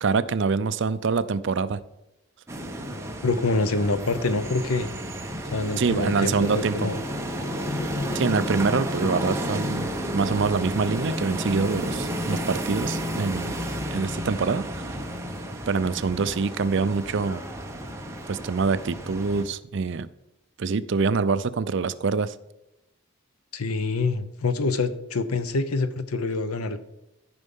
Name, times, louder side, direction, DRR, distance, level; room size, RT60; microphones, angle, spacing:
voice 1, 0.0-1.8 5.8-6.9 8.1-13.6 13.9-14.9 15.7-17.4 18.3-20.1 20.6-22.3, right 4 dB, 55° right, 14 dB, 0.4 m, -25 dB
sound 1, 2.5-19.4, equal, 15° right, 0.9 m, -31 dB
voice 2, 3.2-4.9 5.5-7.0 23.5-26.8, left 3 dB, 90° left, 12 dB, 0.8 m, -26 dB
13.5 x 5.4 x 5.4 m, 0.93 s
head